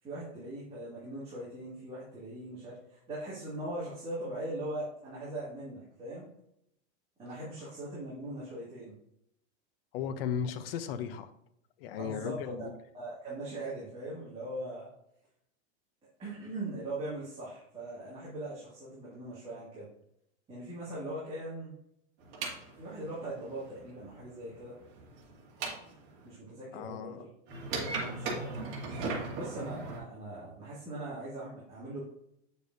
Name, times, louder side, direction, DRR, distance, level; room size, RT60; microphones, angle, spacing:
voice 1, 0.0-6.3 7.2-9.0 12.0-12.7 12.9-14.9 16.2-19.9 20.5-21.7 22.8-24.7 26.2-27.3 27.8-28.7 29.3-32.0, right 1 dB, 15° right, 2.2 m, -40 dB
voice 2, 9.9-11.3 11.8-12.7 26.7-27.2, left 8 dB, 55° left, 0.8 m, -36 dB
sound 1, 22.2-26.3 27.5-30.0, right 3 dB, 50° right, 2.3 m, -38 dB
8.3 x 6.8 x 2.7 m
supercardioid pair, 165°, 34 cm